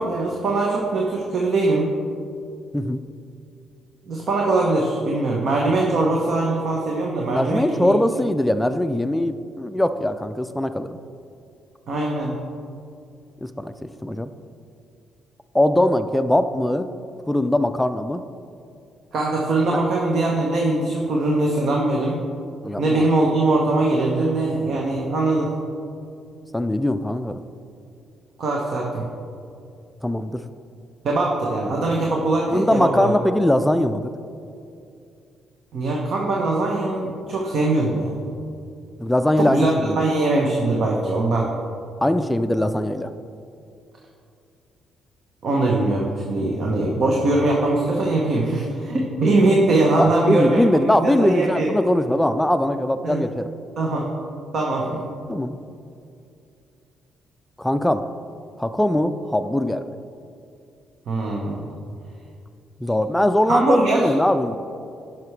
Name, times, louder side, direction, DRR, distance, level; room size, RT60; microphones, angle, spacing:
voice 1, 0.0-1.9 4.0-7.9 11.9-12.4 19.1-22.2 22.8-25.5 28.4-29.1 31.0-33.1 35.7-38.2 39.4-41.5 45.4-51.7 53.0-53.3 53.8-54.1 54.5-55.0 61.1-61.7 63.5-64.1, right 2 dB, 60° right, -2 dB, 1.0 m, -21 dB
voice 2, 2.7-3.0 7.3-11.0 13.4-14.3 15.5-16.9 17.3-18.2 22.6-23.1 26.5-27.4 30.0-30.4 32.5-34.1 39.0-40.0 42.0-43.1 50.0-53.5 55.3-55.6 57.6-58.0 58.6-59.9 62.8-64.6, left 1 dB, 5° left, 10 dB, 0.4 m, -21 dB
10.5 x 5.9 x 3.3 m, 2.5 s
cardioid pair, 90°, 0 cm